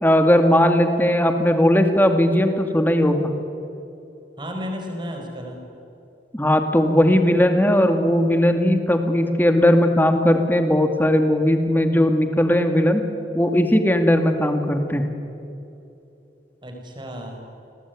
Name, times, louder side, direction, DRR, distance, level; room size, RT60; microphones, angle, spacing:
voice 1, 0.0-3.3 6.3-13.0 13.3-15.1, left 1 dB, 10° left, 6 dB, 2.2 m, -18 dB
voice 2, 4.4-5.7 16.6-17.4, equal, 25° right, 2 dB, 5.4 m, -33 dB
29.0 x 20.5 x 9.6 m, 2.8 s
head